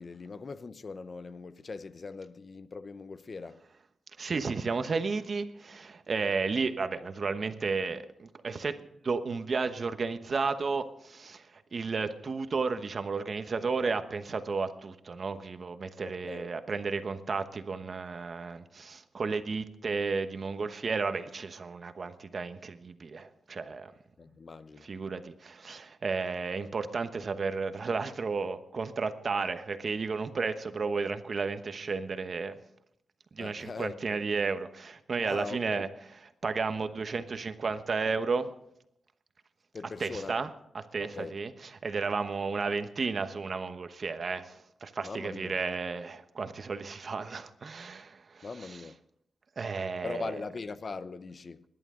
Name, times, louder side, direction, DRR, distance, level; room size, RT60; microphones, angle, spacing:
voice 1, 0.0-3.6 16.0-16.5 24.2-24.9 33.4-34.2 35.3-35.9 39.7-40.4 41.0-41.3 45.0-45.6 48.4-49.0 50.0-51.6, left 4 dB, 45° left, 0.7 m, -41 dB
voice 2, 4.2-8.7 9.0-23.9 24.8-32.5 33.3-35.9 36.4-38.5 40.0-40.5 40.7-41.5 41.8-48.8 49.6-50.4, right 4 dB, 50° right, 1.0 m, -33 dB
26.5 x 11.0 x 3.8 m
wide cardioid pair, 100°, 0 cm